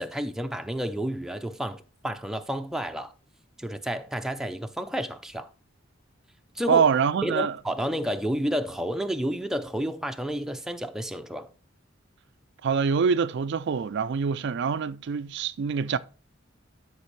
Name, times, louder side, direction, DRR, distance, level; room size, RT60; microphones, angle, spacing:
voice 1, 0.0-3.1 3.6-5.5 6.6-6.8 7.2-11.5, equal, ahead, 0.6 m, -30 dB
voice 2, 6.7-7.6 12.6-16.0, right 6 dB, 60° right, 0.4 m, -25 dB
12.5 x 5.3 x 3.2 m
head